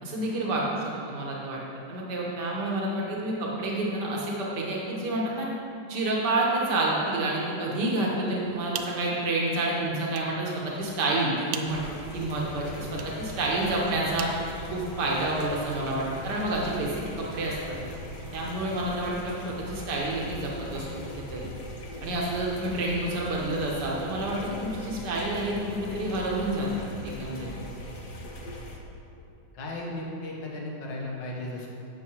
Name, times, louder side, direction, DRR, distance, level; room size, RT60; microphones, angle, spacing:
voice 1, 0.0-1.6 1.9-5.5 5.9-11.8 12.1-14.3 14.7-17.8 18.3-20.9 21.3-21.5 22.0-27.5, right 2 dB, 65° right, -4 dB, 1.9 m, -29 dB
sound 1, 8.4-15.3, right 8 dB, 80° right, 1.3 m, -43 dB
sound 2, 11.7-28.8, left 1 dB, 50° left, 0.6 m, -40 dB
voice 2, 29.5-31.7, left 1 dB, 70° left, -2 dB, 1.9 m, -35 dB
11.0 x 7.4 x 3.1 m, 2.6 s
omnidirectional pair, 2.0 m